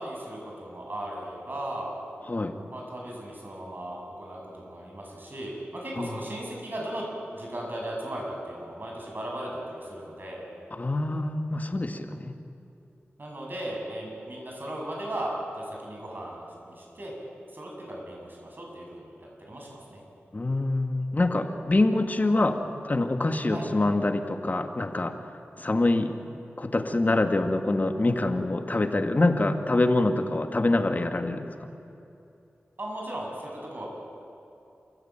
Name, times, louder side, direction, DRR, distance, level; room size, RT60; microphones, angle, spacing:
voice 1, 0.0-2.0 2.7-7.1 7.3-10.5 13.2-17.1 17.5-20.0 23.5-23.7 32.8-33.9, right 1 dB, 50° right, -1 dB, 7.7 m, -37 dB
voice 2, 10.8-12.3 20.3-22.6 22.8-25.2 25.6-26.1 26.6-31.7, left 2 dB, 40° left, 6 dB, 1.9 m, -25 dB
29.5 x 16.0 x 9.0 m, 2.8 s
wide cardioid pair, 55°, 4 cm